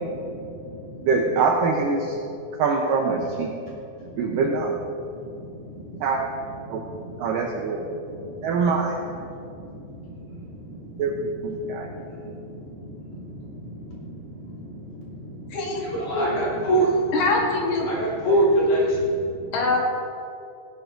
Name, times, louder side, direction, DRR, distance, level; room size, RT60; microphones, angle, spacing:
voice 1, 0.0-1.4 2.0-2.3 3.1-3.4 3.7-17.2 17.8-19.6, right 1 dB, 40° left, -7 dB, 3.7 m, -29 dB
voice 2, 1.0-2.1 2.6-3.5 4.2-4.8 6.0-6.2 6.7-6.8 7.2-7.8 8.4-9.0 11.0-11.9, right 4 dB, 85° right, 0 dB, 1.9 m, -23 dB
voice 3, 15.5-15.8 16.1-16.3 17.1-17.9 19.5-19.8, left 3 dB, 75° left, -1 dB, 3.0 m, -23 dB
17.5 x 10.5 x 2.6 m, 2.6 s
omnidirectional pair, 5.0 m